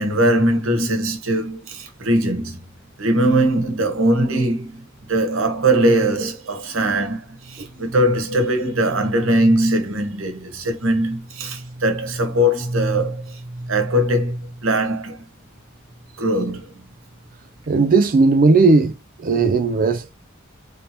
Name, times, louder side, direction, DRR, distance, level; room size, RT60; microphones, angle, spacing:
voice 1, 0.0-2.6 3.0-15.2 16.2-16.7, right 1 dB, 70° right, 1.2 m, -20 dB
voice 2, 17.7-18.9 19.2-20.1, right 3 dB, 45° right, 0.5 m, -16 dB
3.3 x 2.8 x 4.2 m
head